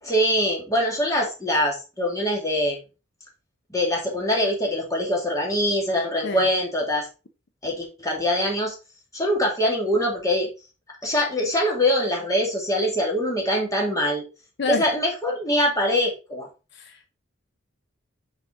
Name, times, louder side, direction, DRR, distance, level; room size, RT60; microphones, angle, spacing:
voice 1, 0.0-2.8 3.7-7.1 7.6-8.8 9.1-10.5 11.0-14.2 14.7-16.5, equal, 15° left, -1 dB, 2.2 m, -23 dB
voice 2, 16.7-17.1, left 4 dB, 60° left, 7 dB, 0.7 m, -28 dB
6.0 x 5.2 x 3.7 m, 0.30 s
head